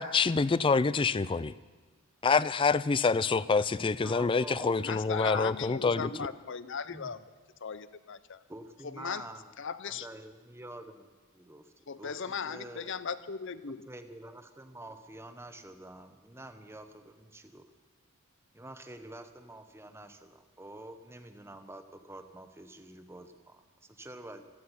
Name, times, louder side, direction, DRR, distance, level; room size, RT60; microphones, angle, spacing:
voice 1, 0.0-1.5 2.2-6.1, left 4 dB, 25° left, 18 dB, 0.3 m, -26 dB
voice 2, 0.7-1.3 4.6-7.2 7.6-8.4 8.8-9.3 9.6-10.1 11.9-13.9, left 6 dB, 60° left, 15 dB, 0.7 m, -38 dB
voice 3, 3.7-4.7 5.9-6.3 6.9-7.1 8.5-9.5 9.8-12.9 13.9-17.7 18.5-24.4, right 1 dB, 10° right, 8 dB, 1.0 m, -47 dB
16.0 x 14.0 x 5.8 m, 1.4 s
head